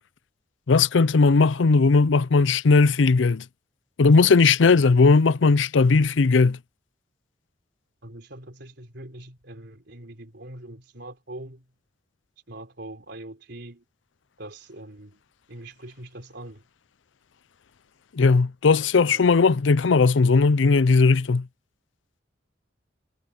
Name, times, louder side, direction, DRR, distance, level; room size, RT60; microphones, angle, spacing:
voice 1, 0.7-3.4 4.0-6.6 18.1-21.5, left 4 dB, 90° left, 0.6 m, -18 dB
voice 2, 8.0-11.7 12.5-13.8 14.4-15.2 15.5-16.7 18.9-19.5, right 1 dB, 65° right, 4.0 m, -42 dB
head